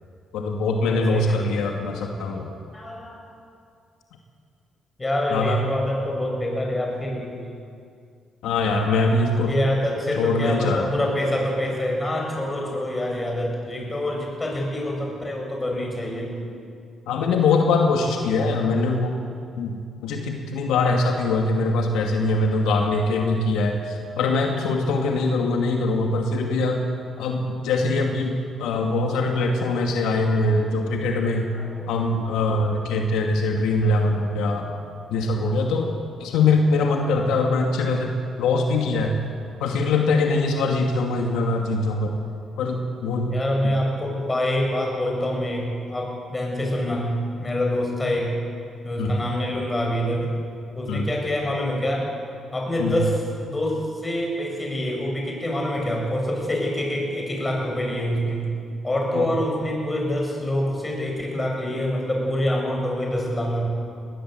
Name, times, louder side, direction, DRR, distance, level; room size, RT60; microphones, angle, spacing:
voice 1, 0.3-2.5 5.3-5.6 8.4-9.5 10.2-10.9 17.1-19.2 19.6-26.8 27.2-31.5 31.9-34.7 35.1-35.9 36.2-39.1 39.6-42.2 42.6-43.3 43.6-43.7 49.0-49.2 50.9-51.1 52.8-52.9 59.1-59.3, left 3 dB, 90° left, 1 dB, 2.4 m, -22 dB
voice 2, 0.9-1.5 2.7-3.2 5.0-7.4 9.5-16.4 31.5-31.9 33.8-34.0 35.4-35.5 43.3-48.4 48.8-50.3 50.7-52.1 52.5-53.2 53.5-58.5 58.8-63.7, left 1 dB, 20° left, 0 dB, 7.5 m, -26 dB
21.0 x 19.0 x 8.1 m, 2.3 s
cardioid pair, 90°, 0 cm